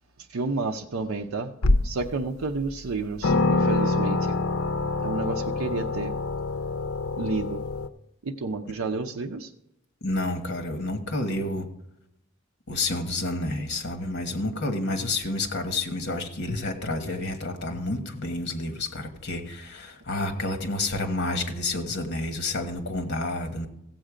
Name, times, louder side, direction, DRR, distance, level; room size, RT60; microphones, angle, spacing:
voice 1, 0.3-1.5 1.8-4.4 5.0-6.1 7.2-7.6 8.2-9.5, right 3 dB, 85° right, 3 dB, 0.6 m, -30 dB
sound 1, 1.6-2.1 2.7-2.8 3.2-7.9, left 3 dB, 90° left, 0.6 m, -25 dB
voice 2, 10.0-11.6 12.7-23.7, left 2 dB, 55° left, 6 dB, 1.4 m, -29 dB
15.0 x 7.7 x 5.0 m, 0.84 s
head